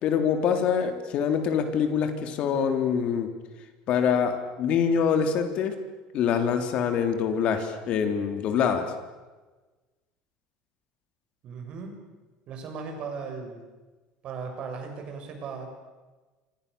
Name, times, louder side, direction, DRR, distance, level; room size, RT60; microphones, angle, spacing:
voice 1, 0.0-3.3 3.9-5.7 6.1-8.8, left 7 dB, 50° left, 7 dB, 3.4 m, -25 dB
voice 2, 11.4-12.0 12.5-13.6 14.2-15.8, right 5 dB, 45° right, 4 dB, 7.0 m, -37 dB
28.0 x 26.0 x 7.0 m, 1.2 s
cardioid pair, 150°, 2 cm